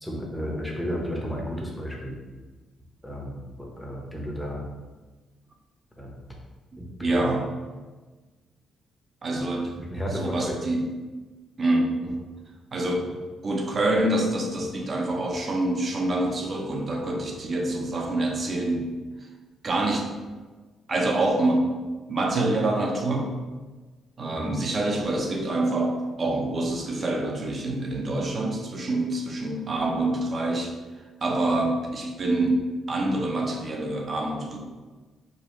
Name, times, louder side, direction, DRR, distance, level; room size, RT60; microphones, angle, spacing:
voice 1, 0.0-2.2 3.0-4.6 6.0-6.2 6.8-7.2 9.8-10.6 24.4-24.5, equal, 5° left, -2 dB, 0.9 m, -33 dB
voice 2, 6.7-7.5 9.2-10.9 11.6-12.2 12.7-18.9 19.6-20.1 20.9-21.7 22.1-23.3 24.2-30.7 31.2-34.6, right 2 dB, 40° right, 1 dB, 0.7 m, -26 dB
4.9 x 2.4 x 3.1 m, 1.3 s
cardioid pair, 90°, 0 cm